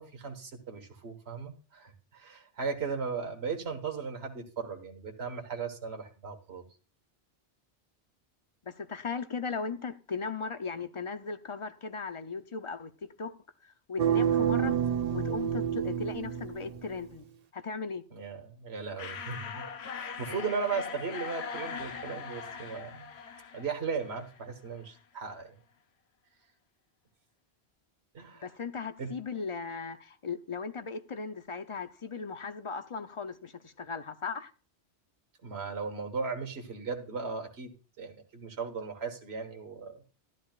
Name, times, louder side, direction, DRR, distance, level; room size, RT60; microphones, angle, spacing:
voice 1, 0.0-6.6 18.1-23.1 23.5-25.5 28.1-28.5 29.0-29.1 35.4-37.7 38.0-40.0, right 5 dB, 70° right, 1.6 m, -37 dB
voice 2, 8.7-12.9 13.2-13.3 13.6-14.8 15.1-17.3 17.5-18.0 28.4-34.5, left 5 dB, 35° left, 0.6 m, -37 dB
sound 1, 14.0-17.0, right 9 dB, 45° right, 0.7 m, -28 dB
sound 2, 19.0-24.5, left 6 dB, 70° left, 1.1 m, -41 dB
13.5 x 10.5 x 2.4 m
omnidirectional pair, 1.1 m